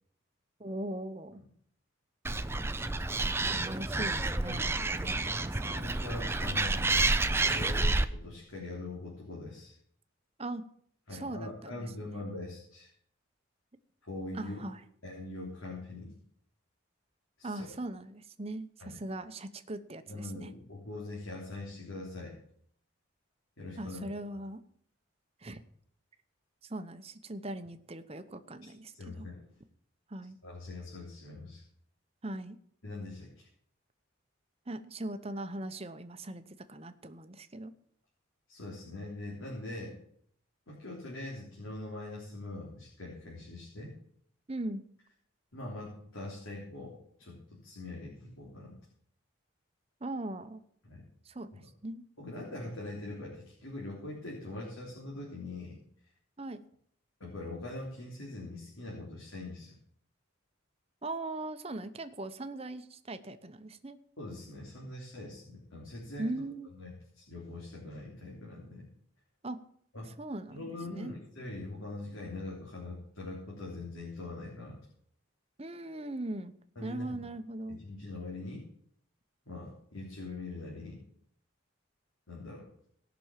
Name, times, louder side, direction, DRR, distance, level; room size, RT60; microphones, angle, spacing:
voice 1, 0.6-1.4 3.4-5.9 10.4-10.6 11.1-12.1 14.3-14.8 17.4-20.5 23.8-24.6 25.4-25.6 26.7-29.3 30.1-30.4 32.2-32.6 34.7-37.7 44.5-44.8 50.0-50.6 51.2-52.0 56.4-56.6 61.0-64.0 66.2-66.7 69.4-69.6 70.0-71.2 75.6-76.5 76.8-77.8, right 2 dB, 30° right, 10 dB, 0.8 m, -40 dB
Animal, 2.2-8.0, right 2 dB, 10° right, 0.4 m, -29 dB
voice 2, 5.7-6.9 7.5-9.8 11.1-12.9 14.0-14.7 15.0-16.1 17.4-17.7 18.8-19.0 20.1-22.4 23.6-24.1 28.9-29.5 30.4-31.6 32.8-33.5 38.5-40.0 40.7-44.0 45.5-48.8 50.8-51.0 52.2-55.8 57.2-59.7 64.2-66.3 66.7-68.9 69.9-70.1 70.5-74.9 76.8-77.2 77.7-78.7 79.5-81.0 82.3-82.7, left 2 dB, 80° left, -3 dB, 3.4 m, -42 dB
18.0 x 6.2 x 7.4 m, 0.65 s
head